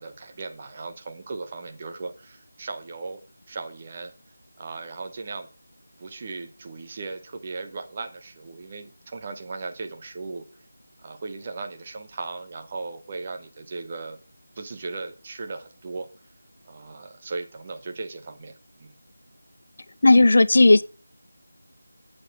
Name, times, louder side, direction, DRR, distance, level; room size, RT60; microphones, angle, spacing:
voice 1, 0.0-3.2 3.5-4.1 4.6-5.5 6.0-10.5 11.0-14.2 14.6-16.1 16.6-18.9, right 3 dB, 25° right, 1.1 m, -37 dB
voice 2, 20.0-20.8, left 2 dB, 50° left, 0.5 m, -14 dB
7.9 x 7.6 x 4.5 m
figure-of-eight pair, 165°, 0 cm